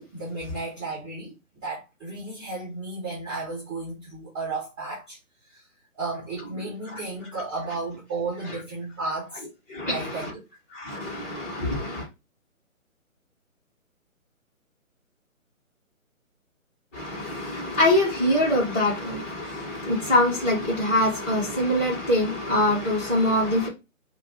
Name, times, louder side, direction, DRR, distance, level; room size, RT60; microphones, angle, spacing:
voice 1, 0.0-1.3 1.6-5.2 5.5-5.6 6.0-9.4 9.9-10.3, right 3 dB, 20° right, 1.7 m, -33 dB
voice 2, 9.7-10.3 10.7-12.0 16.9-23.7, left 1 dB, 10° left, 0.8 m, -24 dB
4.9 x 2.2 x 2.7 m
figure-of-eight pair, 145°, 42 cm